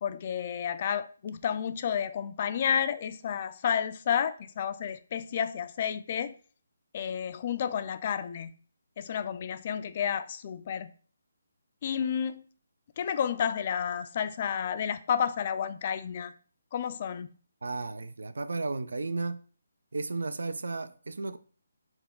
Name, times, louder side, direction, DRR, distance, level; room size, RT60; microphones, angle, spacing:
voice 1, 0.0-6.3 6.9-8.5 9.0-10.9 11.8-12.4 13.0-16.3 16.7-17.3, left 8 dB, 40° left, 0.3 m, -31 dB
voice 2, 17.6-19.4 19.9-21.4, right 3 dB, 75° right, 0.4 m, -34 dB
4.4 x 2.2 x 3.7 m
figure-of-eight pair, 155°, 0 cm